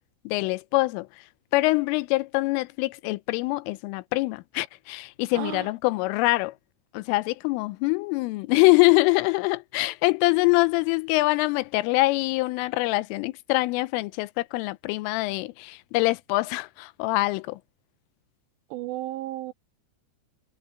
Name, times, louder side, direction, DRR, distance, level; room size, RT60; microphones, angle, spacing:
voice 1, 0.3-1.2 1.5-6.6 6.9-17.6, left 22 dB, 85° left, 3.2 m, -24 dB
voice 2, 5.4-5.7 18.7-19.5, right 16 dB, 90° right, 2.5 m, -33 dB
omnidirectional pair, 5.7 m